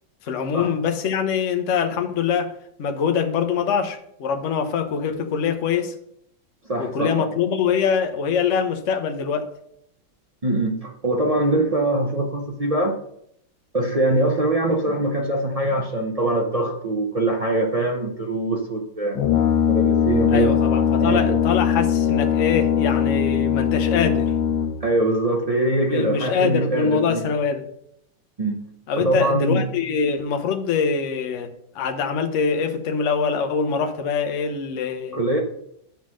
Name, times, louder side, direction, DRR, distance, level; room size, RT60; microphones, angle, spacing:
voice 1, 0.2-2.5 2.8-5.9 6.8-9.5 20.3-24.3 25.9-27.7 28.9-35.2, left 6 dB, 50° left, 1.0 m, -24 dB
voice 2, 6.7-7.3 10.4-13.0 13.7-19.2 19.7-20.5 21.0-21.4 24.8-27.3 28.4-28.6 29.0-29.6 35.1-35.4, right 1 dB, 45° right, 0.4 m, -23 dB
Brass instrument, 19.1-24.9, left 8 dB, 75° left, 1.5 m, -20 dB
10.0 x 3.8 x 6.3 m
omnidirectional pair, 2.1 m